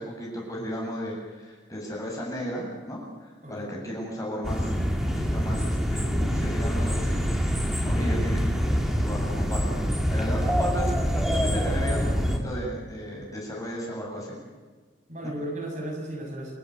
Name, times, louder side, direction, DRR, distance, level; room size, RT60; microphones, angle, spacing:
voice 1, 0.0-7.2 7.8-14.4 15.2-15.3, equal, 20° left, -2 dB, 8.0 m, -35 dB
voice 2, 3.4-3.7 15.1-16.5, right 1 dB, 40° right, 0 dB, 7.1 m, -35 dB
sound 1, 4.4-12.4, equal, ahead, 2.7 m, -25 dB
30.0 x 14.0 x 9.8 m, 1.4 s
head